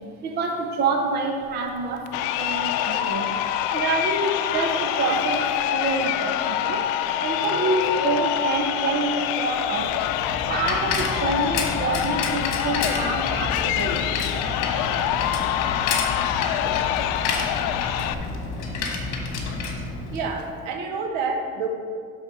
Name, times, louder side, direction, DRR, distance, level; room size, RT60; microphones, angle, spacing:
voice 1, 0.0-3.4 3.7-10.0 10.3-14.1, right 3 dB, 30° right, 3 dB, 0.7 m, -27 dB
Crowd, 2.1-18.1, left 11 dB, 85° left, 0.6 m, -26 dB
Bicycle, 9.7-20.5, left 3 dB, 60° left, 1.5 m, -30 dB
voice 2, 20.1-21.7, right 4 dB, 75° right, 3 dB, 1.4 m, -28 dB
11.5 x 4.1 x 5.9 m, 2.3 s
cardioid pair, 165°, 31 cm